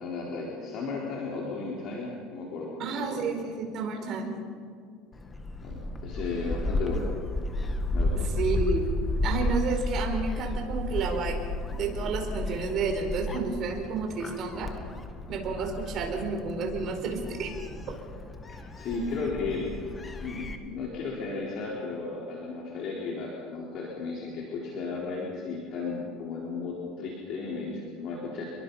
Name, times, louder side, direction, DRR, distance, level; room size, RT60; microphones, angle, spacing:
voice 1, 0.0-3.2 5.6-7.1 7.9-8.3 18.5-19.7 20.2-28.5, left 4 dB, 50° left, -3 dB, 4.3 m, -34 dB
voice 2, 2.8-4.3 8.2-8.9 9.2-11.4 11.7-14.7 15.3-17.5, right 4 dB, 40° right, 3 dB, 4.8 m, -31 dB
Gull seagull, 5.1-20.6, left 2 dB, 20° left, 1.8 m, -33 dB
29.0 x 22.5 x 5.7 m, 2.1 s
cardioid pair, 150°, 0 cm